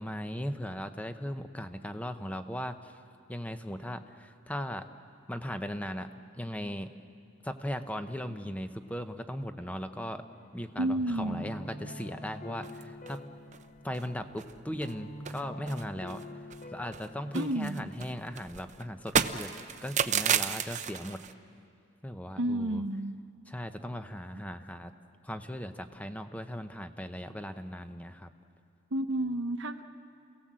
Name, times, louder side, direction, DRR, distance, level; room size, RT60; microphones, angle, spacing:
voice 1, 0.0-2.9 3.3-4.9 5.3-6.1 6.4-6.9 7.4-10.2 10.5-13.2 13.8-16.2 16.7-19.5 19.8-21.2 22.0-22.8 23.5-24.9 25.2-28.3, equal, 5° left, 8 dB, 0.9 m, -38 dB
sound 1, 10.3-18.2, left 1 dB, 40° left, 0.8 m, -47 dB
voice 2, 10.8-11.5 17.3-17.9 22.4-23.2 28.9-29.8, right 1 dB, 60° right, 8 dB, 1.0 m, -31 dB
sound 2, 12.6-13.2 13.5-13.6 13.9-14.1 14.4-15.0 15.3-16.7 16.9-21.3, right 7 dB, 35° right, 0.6 m, -32 dB
28.5 x 17.5 x 7.6 m, 2.5 s
head